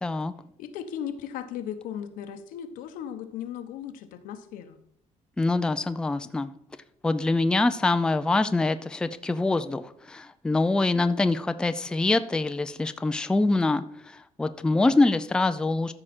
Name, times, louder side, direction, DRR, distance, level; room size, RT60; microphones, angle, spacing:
voice 1, 0.0-0.3 5.4-6.5 7.0-15.9, left 2 dB, 5° left, 11 dB, 0.3 m, -25 dB
voice 2, 0.6-4.8, left 9 dB, 90° left, 9 dB, 1.0 m, -36 dB
13.5 x 4.9 x 4.3 m, 0.69 s
cardioid pair, 145°, 14 cm